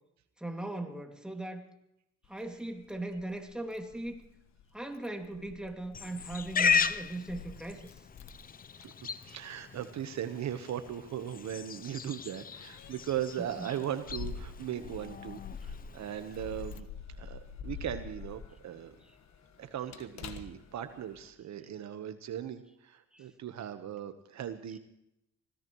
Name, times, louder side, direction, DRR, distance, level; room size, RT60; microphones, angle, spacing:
voice 1, 0.4-1.7 2.3-4.3 4.7-7.8 13.4-13.7 23.1-23.3, right 2 dB, 5° right, 3 dB, 2.3 m, -39 dB
Keys jangling, 2.2-21.3, left 6 dB, 60° left, 1.5 m, -48 dB
Livestock farm animals working animals, 5.9-16.8, left 6 dB, 30° left, 0.6 m, -36 dB
voice 2, 9.2-16.9 17.2-18.9 19.6-24.8, right 10 dB, 65° right, 9 dB, 1.2 m, -38 dB
25.0 x 17.0 x 3.1 m, 0.79 s
cardioid pair, 90°, 30 cm